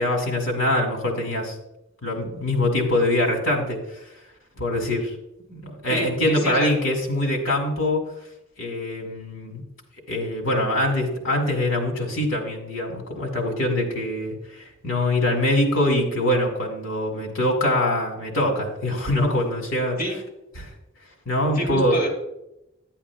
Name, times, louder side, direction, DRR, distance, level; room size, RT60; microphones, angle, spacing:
voice 1, 0.0-1.6 2.0-4.0 4.6-5.1 5.5-8.1 8.6-9.6 10.1-20.0 20.6-20.7 21.3-22.0, left 1 dB, 85° left, 2 dB, 2.2 m, -24 dB
voice 2, 5.9-6.7 20.0-20.2 21.6-22.1, right 1 dB, 45° left, -2 dB, 2.2 m, -27 dB
10.0 x 9.8 x 2.4 m, 0.87 s
head